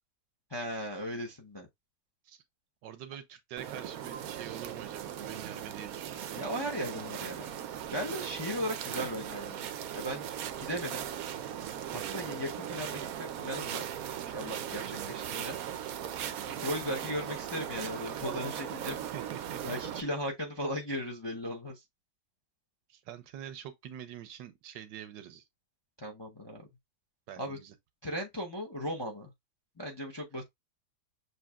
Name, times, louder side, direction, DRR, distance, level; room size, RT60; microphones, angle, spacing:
voice 1, 0.5-1.7 6.4-7.5 7.9-9.6 9.9-10.3 10.6-11.0 12.1-13.8 14.2-15.6 16.6-19.0 19.6-21.8 26.0-26.7 27.4-27.6 28.0-29.3 29.8-30.4, equal, 25° left, 0.5 m, -37 dB
voice 2, 2.8-6.4 11.9-12.3 14.8-15.1 19.1-19.6 22.9-25.4 27.3-27.7, right 10 dB, 90° right, 1.4 m, -45 dB
sound 1, 3.6-20.0, right 10 dB, 65° right, 0.9 m, -38 dB
6.8 x 3.1 x 2.3 m
omnidirectional pair, 1.9 m